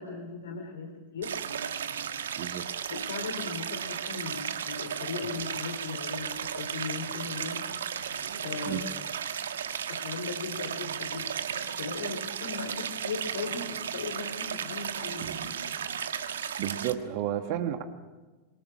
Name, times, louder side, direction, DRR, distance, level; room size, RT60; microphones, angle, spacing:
voice 1, 0.0-1.3 2.9-7.7 8.4-9.0 9.9-11.3 11.8-15.5, left 4 dB, 65° left, 5 dB, 3.2 m, -38 dB
Stream, 1.2-16.9, right 8 dB, 65° right, 1.5 m, -35 dB
voice 2, 16.6-17.8, right 11 dB, 45° right, 7 dB, 1.8 m, -32 dB
26.0 x 23.5 x 6.1 m, 1.2 s
figure-of-eight pair, 90°, 0 cm